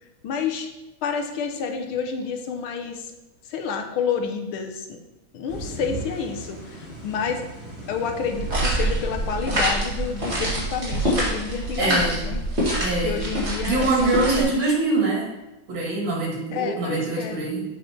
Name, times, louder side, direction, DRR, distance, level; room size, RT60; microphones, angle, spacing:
voice 1, 0.2-0.7 1.0-3.1 3.4-5.0 5.3-7.4 7.9-12.4 13.0-14.6 16.5-17.4, left 6 dB, 90° left, 4 dB, 1.7 m, -29 dB
sound 1, 5.5-10.7, equal, 5° right, 2.7 m, -38 dB
sound 2, 8.3-14.4, right 1 dB, 35° right, 2.4 m, -25 dB
voice 2, 11.8-12.2 12.8-13.2 13.6-15.3 15.7-17.7, right 2 dB, 70° right, -3 dB, 2.9 m, -24 dB
7.6 x 5.4 x 4.5 m, 1.0 s
omnidirectional pair, 2.2 m